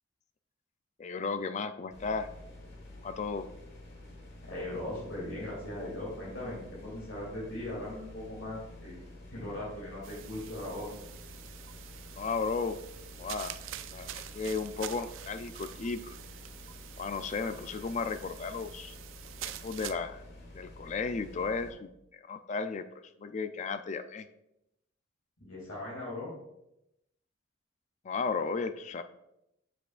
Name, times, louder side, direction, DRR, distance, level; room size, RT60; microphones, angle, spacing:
voice 1, 1.0-2.3 3.0-3.5 12.2-12.8 13.2-13.6 13.9-16.2 17.0-18.9 19.4-20.2 20.5-22.9 23.2-24.3 28.0-29.0, left 4 dB, 35° left, 10 dB, 0.3 m, -34 dB
sound 1, 1.9-21.7, left 1 dB, 50° left, 1.4 m, -49 dB
voice 2, 4.4-9.0 9.3-10.9 25.4-26.3, left 1 dB, 70° left, -6 dB, 2.5 m, -39 dB
sound 2, 10.0-19.9, right 12 dB, 70° right, 0.3 m, -46 dB
8.1 x 6.6 x 2.4 m, 0.86 s
head